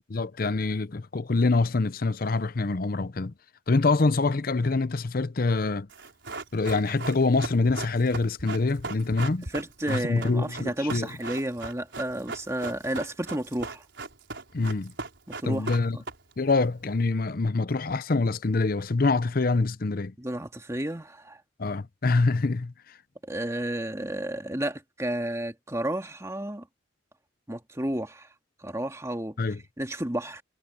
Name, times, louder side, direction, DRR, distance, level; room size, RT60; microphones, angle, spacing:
voice 1, 0.1-3.3 3.7-5.9 6.5-9.5 9.9-11.1 14.5-14.9 15.5-16.0 16.4-20.1 21.6-22.7 29.4-29.6, left 3 dB, 45° left, 0.6 m, -25 dB
Run, 5.9-16.5 16.8-16.9, right 3 dB, 65° right, 5.6 m, -38 dB
voice 2, 9.5-13.8 15.3-16.0 20.2-21.4 23.2-26.7 27.5-28.3 28.6-29.4 29.8-30.4, right 1 dB, 15° right, 2.1 m, -32 dB
head